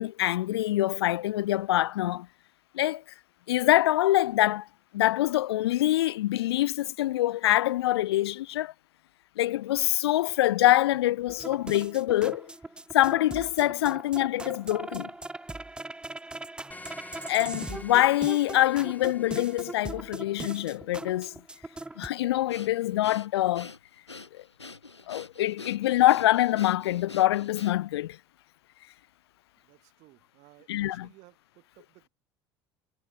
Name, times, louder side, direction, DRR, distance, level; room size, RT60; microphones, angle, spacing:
voice 1, 0.0-2.3 2.7-3.0 3.5-4.7 4.9-8.7 9.4-12.5 12.9-15.1 17.3-21.4 22.0-23.7 24.3-24.4 25.1-28.2 30.7-31.1, left 15 dB, 70° left, 0.7 m, -25 dB
sound 1, 11.3-22.1, right 2 dB, 5° right, 0.5 m, -40 dB
sound 2, 16.7-19.8, left 2 dB, 10° left, 2.8 m, -48 dB
Breathing, 22.5-28.0, left 3 dB, 90° left, 2.8 m, -45 dB
voice 2, 29.6-32.1, right 22 dB, 55° right, 3.9 m, -58 dB
figure-of-eight pair, 70°, 14 cm